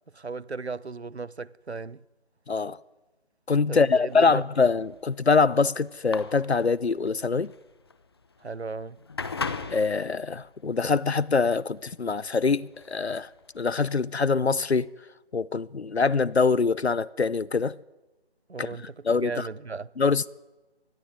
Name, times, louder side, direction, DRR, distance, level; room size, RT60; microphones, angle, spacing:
voice 1, 0.1-2.0 3.7-4.4 8.4-9.0 18.5-19.9, right 4 dB, 85° right, 0.9 m, -36 dB
voice 2, 2.5-2.8 3.5-7.5 9.7-14.9 15.3-17.8 18.6-18.7 19.0-19.5 20.0-20.3, left 4 dB, 80° left, 0.8 m, -24 dB
sound 1, 4.1-13.9, left 4 dB, 25° left, 1.1 m, -39 dB
25.0 x 20.0 x 9.5 m
figure-of-eight pair, 160°, 32 cm